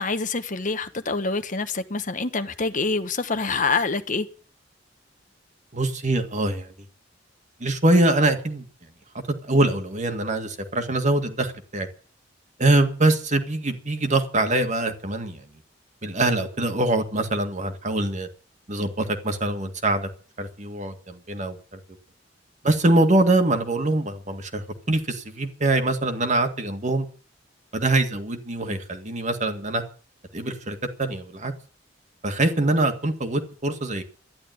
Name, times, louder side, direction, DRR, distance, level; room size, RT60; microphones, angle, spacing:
voice 1, 0.0-4.3, left 4 dB, 45° left, 1.1 m, -26 dB
voice 2, 5.7-6.7 7.6-8.6 9.1-11.9 12.6-15.4 16.0-18.3 18.7-20.1 20.4-21.8 22.6-27.1 27.7-29.8 30.3-31.5 32.2-34.0, right 2 dB, 40° right, 1.9 m, -23 dB
12.0 x 11.0 x 9.3 m
head